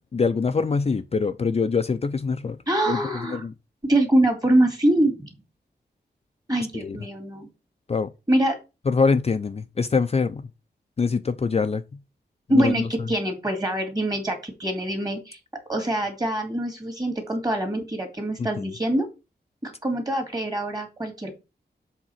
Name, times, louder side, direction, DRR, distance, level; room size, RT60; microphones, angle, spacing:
voice 1, 0.1-2.6 2.9-3.5 6.7-7.0 7.9-8.1 8.9-10.4 11.0-11.8 12.5-12.9 18.4-18.7, left 4 dB, 35° left, 0.4 m, -24 dB
voice 2, 2.7-3.4 3.8-5.3 6.5-7.5 8.3-8.6 12.5-15.4 15.7-19.1 19.6-21.4, right 1 dB, 20° right, 2.2 m, -24 dB
7.3 x 3.6 x 5.7 m
wide cardioid pair, 140°, 17 cm